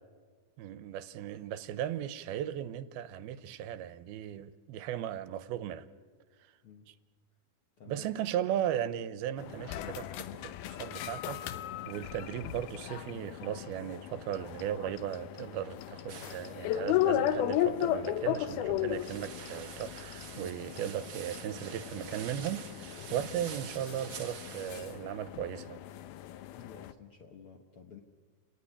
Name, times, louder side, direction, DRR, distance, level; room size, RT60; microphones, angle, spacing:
voice 1, 0.6-5.9 7.9-11.4 11.9-25.8, right 10 dB, 85° right, 2.8 m, -37 dB
sound 1, 9.4-26.9, left 12 dB, 80° left, 2.7 m, -36 dB
sound 2, 16.1-16.6 18.9-25.0, right 7 dB, 50° right, 1.6 m, -47 dB
voice 2, 26.5-28.0, left 7 dB, 65° left, 1.4 m, -52 dB
29.5 x 19.0 x 9.9 m
omnidirectional pair, 4.3 m